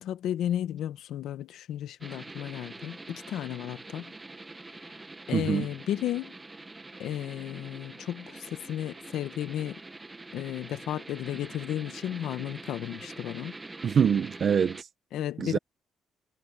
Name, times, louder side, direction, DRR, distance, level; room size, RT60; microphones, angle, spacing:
voice 1, 0.0-4.1 5.3-6.3 7.0-9.8 10.3-13.6 15.1-15.6, left 11 dB, 80° left, 1.4 m, -33 dB
sound 1, 2.0-14.8, right 2 dB, 20° right, 1.6 m, -45 dB
voice 2, 5.3-5.7 13.8-14.8 15.4-15.6, right 7 dB, 55° right, 1.1 m, -24 dB
cardioid pair, 90°, 0 cm